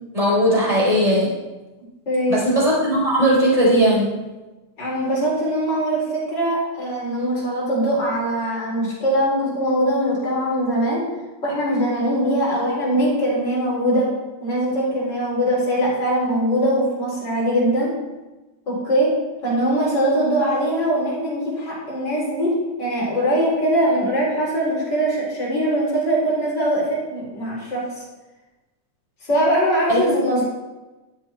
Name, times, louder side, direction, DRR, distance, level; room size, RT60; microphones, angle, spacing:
voice 1, 0.1-1.3 2.3-4.2 29.9-30.0, equal, 10° right, -6 dB, 4.1 m, -18 dB
voice 2, 2.1-2.5 4.8-11.0 11.4-14.1 14.4-17.9 18.7-19.1 19.4-22.5 22.8-27.8 29.2-30.4, right 1 dB, 35° left, -6 dB, 4.4 m, -21 dB
12.5 x 7.3 x 4.4 m, 1.1 s
omnidirectional pair, 3.5 m